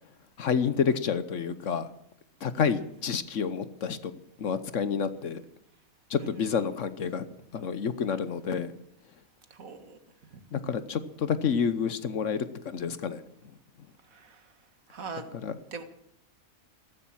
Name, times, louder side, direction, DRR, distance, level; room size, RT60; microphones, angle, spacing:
voice 1, 0.4-1.9 2.4-4.1 4.4-5.4 6.1-7.2 7.5-8.7 10.5-13.2 15.3-15.6, left 6 dB, 60° left, 13 dB, 1.2 m, -29 dB
voice 2, 9.5-10.0 10.3-10.4 14.1-14.4 14.9-15.3 15.7-15.8, right 4 dB, 70° right, 8 dB, 2.1 m, -41 dB
14.5 x 14.0 x 7.3 m, 0.74 s
omnidirectional pair, 1.5 m